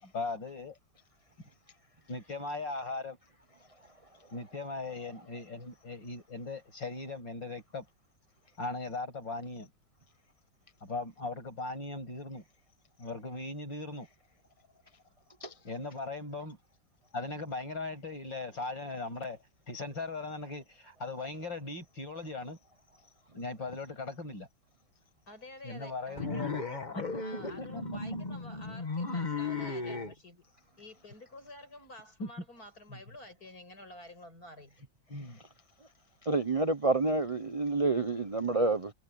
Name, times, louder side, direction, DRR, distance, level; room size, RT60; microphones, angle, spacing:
voice 1, 0.0-0.7 2.1-3.2 4.3-7.9 8.6-9.7 10.8-12.4 13.0-14.1 15.6-16.6 17.1-22.6 23.3-24.5 25.6-26.6 26.9-27.8 32.2-32.3 32.9-33.0 35.1-35.4, left 3 dB, 70° left, 8.2 m, -39 dB
voice 2, 25.3-30.4 30.8-34.8, left 1 dB, 50° left, 7.6 m, -50 dB
sound 1, 26.2-30.1, left 3 dB, 25° left, 1.8 m, -35 dB
voice 3, 36.2-38.9, right 3 dB, 65° right, 0.3 m, -28 dB
omnidirectional pair, 2.1 m